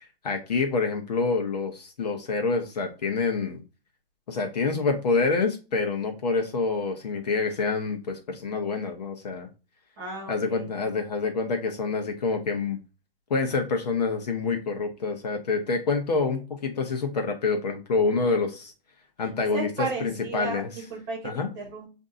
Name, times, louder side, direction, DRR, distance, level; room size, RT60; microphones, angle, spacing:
voice 1, 0.2-3.6 4.3-9.5 10.3-12.8 13.3-18.7 19.2-20.7 21.2-21.5, left 4 dB, 45° left, 4 dB, 0.7 m, -27 dB
voice 2, 10.0-10.7 19.2-21.9, right 3 dB, 25° right, 0 dB, 1.5 m, -35 dB
6.5 x 2.6 x 2.5 m, 0.32 s
hypercardioid pair, 165°, 29 cm